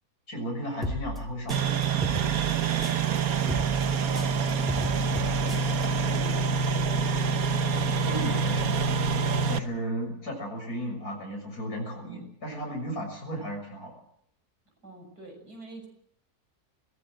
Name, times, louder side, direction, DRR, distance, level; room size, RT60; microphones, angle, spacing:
voice 1, 0.3-1.8 8.1-8.8 9.5-13.9, right 1 dB, 65° left, 1 dB, 6.9 m, -34 dB
sound 1, 0.8-3.2 3.5-5.8, equal, ahead, 2.3 m, -36 dB
sound 2, 1.5-9.6, right 5 dB, 65° right, 1.4 m, -26 dB
voice 2, 2.7-5.6 6.1-7.4 14.8-15.9, right 2 dB, 80° right, 4 dB, 6.9 m, -46 dB
21.5 x 17.0 x 7.7 m, 0.71 s
omnidirectional pair, 1.7 m